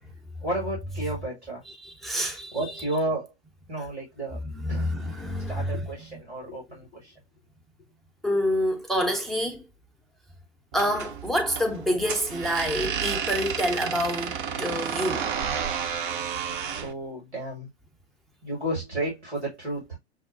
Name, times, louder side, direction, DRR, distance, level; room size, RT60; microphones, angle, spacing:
voice 1, 0.4-1.6 2.5-3.3 3.7-4.4 4.7-4.9 5.5-7.1 16.8-17.7 18.4-20.0, right 1 dB, 85° right, 2.1 m, -32 dB
voice 2, 1.8-2.6 4.5-5.9 8.2-9.6 10.7-15.3, equal, ahead, 0.6 m, -27 dB
sound 1, 10.7-16.9, right 7 dB, 50° right, 0.8 m, -31 dB
6.4 x 2.2 x 2.5 m
figure-of-eight pair, 100°, 33 cm